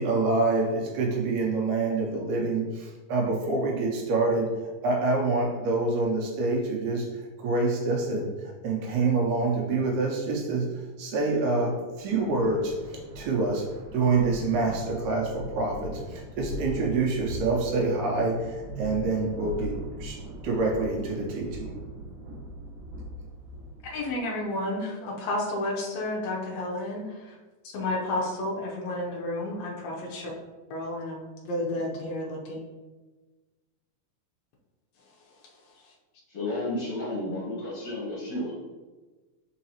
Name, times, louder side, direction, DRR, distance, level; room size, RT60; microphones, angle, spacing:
voice 1, 0.0-21.7, right 3 dB, 80° right, 0 dB, 1.9 m, -27 dB
sound 1, 11.9-24.2, equal, 65° right, 1.3 m, -40 dB
voice 2, 23.8-27.4 27.6-30.3 30.7-32.6 35.8-35.9, left 1 dB, 80° left, -2 dB, 1.5 m, -31 dB
voice 3, 36.3-38.5, left 1 dB, 60° left, -7 dB, 1.7 m, -32 dB
4.6 x 3.9 x 2.8 m, 1.3 s
omnidirectional pair, 3.9 m